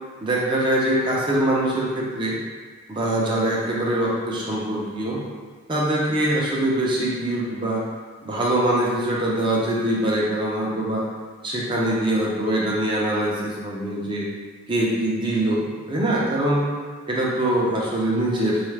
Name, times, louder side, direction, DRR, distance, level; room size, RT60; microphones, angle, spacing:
voice 1, 0.2-2.4 2.9-5.2 5.7-7.8 8.2-11.0 11.4-14.3 14.7-16.7 17.1-18.6, right 1 dB, 20° right, -5 dB, 0.5 m, -23 dB
3.6 x 2.4 x 3.2 m, 1.5 s
head